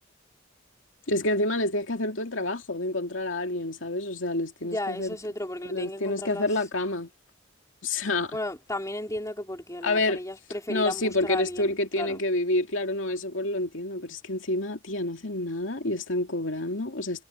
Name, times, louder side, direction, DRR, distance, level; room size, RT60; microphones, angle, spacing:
voice 1, 1.1-5.2 5.7-7.1 7.8-8.4 9.8-10.2 10.7-17.2, left 2 dB, 80° left, 2.5 m, -28 dB
voice 2, 4.6-6.5 8.3-12.2, left 1 dB, 15° left, 4.6 m, -34 dB
head